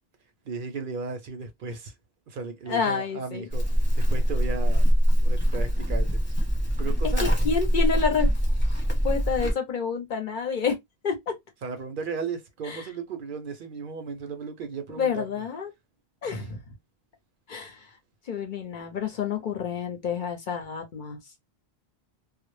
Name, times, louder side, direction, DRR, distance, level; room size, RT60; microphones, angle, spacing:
voice 1, 0.5-1.9 2.3-3.7 4.0-4.9 5.2-6.2 6.8-7.6 11.6-15.3, right 5 dB, 60° right, 0.6 m, -35 dB
voice 2, 2.7-3.4 7.0-8.3 8.9-11.4 12.6-12.8 14.9-15.7 16.2-16.7 17.5-17.9 18.3-21.2, left 6 dB, 55° left, 0.7 m, -29 dB
Livestock farm animals working animals, 3.5-9.5, equal, 10° left, 0.9 m, -23 dB
2.0 x 2.0 x 3.0 m
omnidirectional pair, 1.1 m